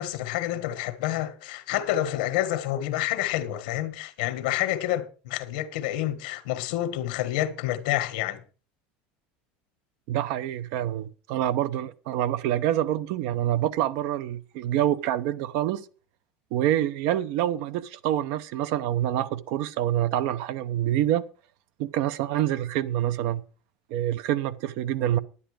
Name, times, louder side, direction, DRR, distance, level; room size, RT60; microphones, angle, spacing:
voice 1, 0.0-8.4, left 13 dB, 90° left, 1.5 m, -28 dB
voice 2, 10.1-15.9 16.5-21.3 21.8-23.4 23.9-25.2, right 12 dB, 70° right, 0.9 m, -26 dB
10.5 x 9.9 x 4.9 m
cardioid pair, 135°, 4 cm